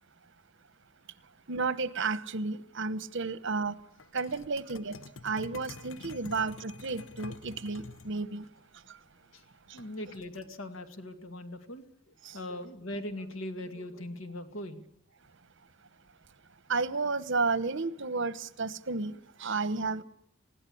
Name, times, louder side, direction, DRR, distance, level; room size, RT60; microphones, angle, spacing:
voice 1, 1.5-3.8 4.1-5.0 5.2-8.5 8.9-9.0 9.7-9.8 12.2-12.4 16.7-20.0, right 4 dB, 65° right, 1.1 m, -32 dB
sound 1, 4.0-8.1 9.8-10.6, left 4 dB, 70° left, 0.9 m, -47 dB
voice 2, 9.7-14.8, left 1 dB, 90° left, 2.2 m, -40 dB
20.5 x 16.5 x 8.6 m
head